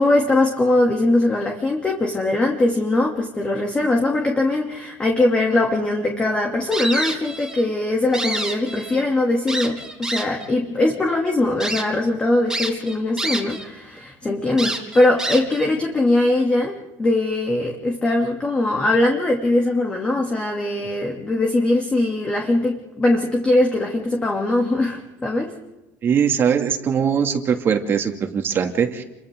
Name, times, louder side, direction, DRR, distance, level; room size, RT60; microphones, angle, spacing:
voice 1, 0.0-25.5, left 2 dB, 15° left, 1 dB, 3.0 m, -21 dB
sound 1, 6.7-7.7 8.0-9.0 9.5-10.5 11.0-11.1 11.6-11.8 12.5-13.7 14.0-14.1 14.6-15.7, right 2 dB, 5° right, 4.0 m, -27 dB
voice 2, 26.0-29.0, right 7 dB, 35° right, 4 dB, 2.6 m, -21 dB
29.5 x 24.5 x 3.9 m, 0.99 s
cardioid pair, 140°, 7 cm